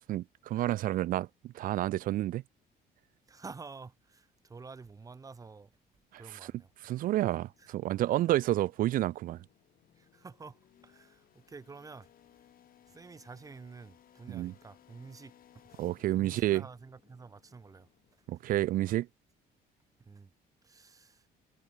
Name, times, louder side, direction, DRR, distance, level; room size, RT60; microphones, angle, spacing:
voice 1, 0.1-2.4 6.1-6.5 6.8-9.4 14.3-14.5 15.8-16.6 18.3-19.1, right 14 dB, 55° right, 0.4 m, -30 dB
voice 2, 3.3-5.7 6.1-6.7 7.6-7.7 10.0-12.1 12.9-15.7 16.1-17.9 20.1-20.3 20.6-21.3, right 4 dB, 20° right, 0.7 m, -49 dB
sound 1, 6.7-18.5, left 11 dB, 60° left, 4.0 m, -64 dB
cardioid pair, 110°, 17 cm